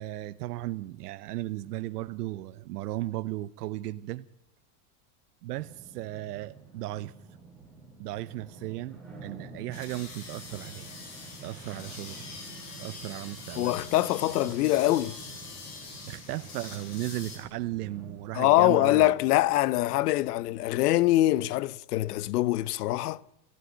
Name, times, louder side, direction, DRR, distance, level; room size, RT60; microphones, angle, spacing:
voice 1, 0.0-4.3 5.4-7.1 8.0-10.9 11.4-12.2 12.8-13.8 14.4-14.6 16.1-19.1, right 16 dB, 80° right, 1.0 m, -36 dB
sound 1, 5.6-18.1, right 3 dB, ahead, 5.5 m, -49 dB
sound 2, 9.7-17.4, left 4 dB, 35° left, 7.0 m, -44 dB
sound 3, 10.4-21.2, left 2 dB, 20° left, 7.6 m, -57 dB
voice 2, 13.6-15.2 18.3-23.2, left 16 dB, 75° left, 0.9 m, -24 dB
28.5 x 15.0 x 9.4 m
supercardioid pair, 175°, 46 cm